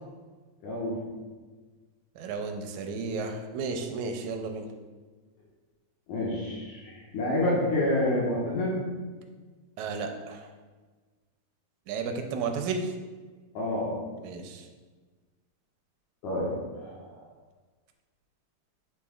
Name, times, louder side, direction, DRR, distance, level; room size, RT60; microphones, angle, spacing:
voice 1, 0.6-1.0 6.1-8.8 13.5-13.9 16.2-16.5 16.8-17.1, left 1 dB, 85° left, -6 dB, 2.8 m, -28 dB
voice 2, 2.2-4.7 9.8-10.5 11.9-12.9 14.2-14.7, right 4 dB, 85° right, 5 dB, 2.0 m, -33 dB
8.2 x 7.0 x 2.4 m, 1.4 s
omnidirectional pair, 3.4 m